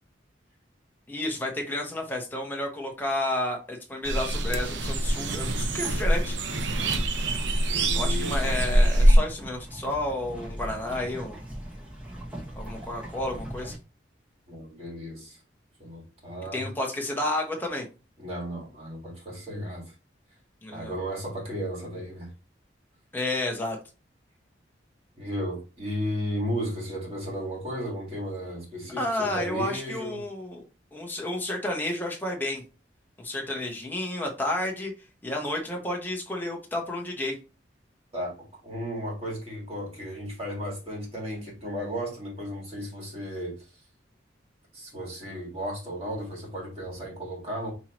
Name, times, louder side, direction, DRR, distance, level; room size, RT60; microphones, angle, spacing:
voice 1, 1.1-6.4 7.9-11.4 12.6-13.8 16.5-17.9 20.6-20.9 23.1-23.8 29.0-30.6 30.9-32.6 33.2-34.9 35.2-37.4, left 1 dB, 10° left, 1.0 m, -31 dB
sound 1, 4.0-9.2, right 1 dB, 75° right, 0.7 m, -23 dB
sound 2, 4.3-13.8, equal, 5° right, 1.3 m, -40 dB
voice 2, 7.7-8.6 14.5-15.4 15.8-16.6 18.2-19.9 20.7-22.3 25.2-30.2 38.1-38.4 38.6-43.8 44.7-47.7, equal, 30° right, 1.9 m, -34 dB
5.6 x 3.0 x 2.9 m
head